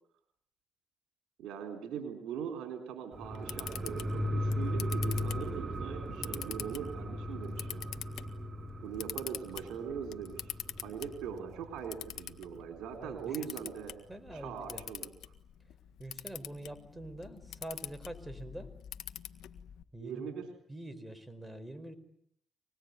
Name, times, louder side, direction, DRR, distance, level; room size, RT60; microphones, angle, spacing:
voice 1, 1.4-7.9 8.8-10.6 10.8-13.9 14.3-15.1 20.0-20.5, right 7 dB, 75° right, 4 dB, 3.9 m, -41 dB
Camera, 3.1-19.8, left 11 dB, 80° left, 1.7 m, -46 dB
sound 1, 3.1-12.2 12.6-12.7, equal, 40° right, 2.2 m, -37 dB
voice 2, 13.0-13.5 14.1-14.9 16.0-18.7 19.9-20.4 20.7-22.0, right 1 dB, 10° right, 12 dB, 5.1 m, -45 dB
26.0 x 20.0 x 9.8 m, 0.67 s
supercardioid pair, 55°, 0 cm